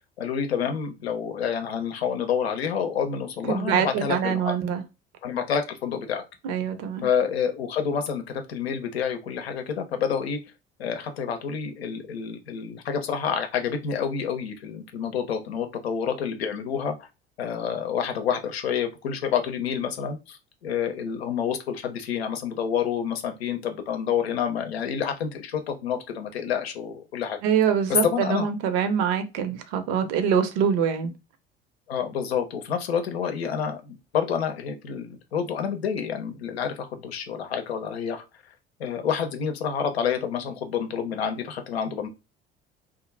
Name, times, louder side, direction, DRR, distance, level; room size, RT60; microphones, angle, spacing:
voice 1, 0.2-4.6 5.2-6.2 7.0-10.4 10.8-17.0 17.4-27.4 28.0-28.5 31.9-38.2 38.8-42.1, left 7 dB, 80° left, 0.6 m, -28 dB
voice 2, 3.5-4.8 6.4-7.1 27.4-31.1, right 8 dB, 55° right, 0.7 m, -24 dB
2.3 x 2.0 x 3.1 m
figure-of-eight pair, 60°, 31 cm